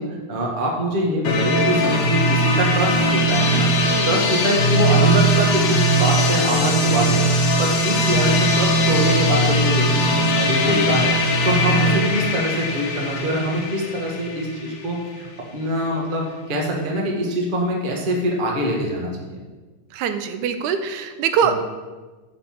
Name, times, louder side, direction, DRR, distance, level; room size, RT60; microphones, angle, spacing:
voice 1, 0.0-3.7 4.1-7.2 7.6-15.3 15.5-19.4 21.4-21.5, equal, 40° right, -1 dB, 0.7 m, -24 dB
sound 1, 1.2-15.0, equal, 65° left, 1.9 m, -19 dB
voice 2, 19.9-21.5, right 7 dB, 90° right, 9 dB, 2.1 m, -23 dB
6.7 x 6.6 x 5.9 m, 1.3 s
omnidirectional pair, 3.4 m